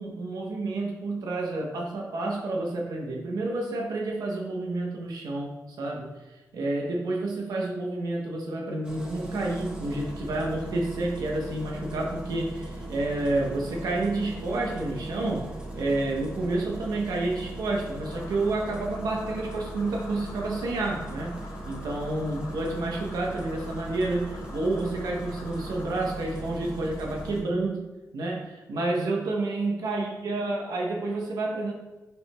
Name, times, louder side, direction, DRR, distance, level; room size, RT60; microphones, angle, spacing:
voice 1, 0.0-6.2 6.5-21.4 21.6-27.9 28.1-31.7, right 2 dB, 80° right, -1 dB, 0.7 m, -29 dB
Engine starting, 8.8-27.4, right 1 dB, 15° right, 0.9 m, -39 dB
sound 1, 18.0-26.2, left 3 dB, 70° left, 0.5 m, -47 dB
5.4 x 2.9 x 2.2 m, 1.1 s
cardioid pair, 75°, 6 cm